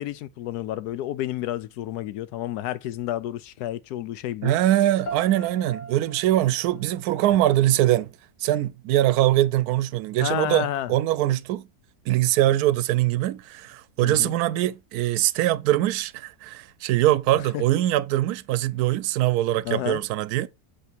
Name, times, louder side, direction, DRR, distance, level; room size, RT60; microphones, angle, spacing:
voice 1, 0.0-4.5 10.2-10.9 14.0-14.3 17.5-17.6 19.6-20.0, left 13 dB, 80° left, 1.1 m, -30 dB
voice 2, 4.4-8.1 8.4-11.7 12.1-20.5, right 14 dB, 75° right, 1.0 m, -22 dB
sound 1, 5.1-8.0, right 2 dB, 40° left, 0.7 m, -41 dB
8.2 x 3.4 x 4.4 m
omnidirectional pair, 1.6 m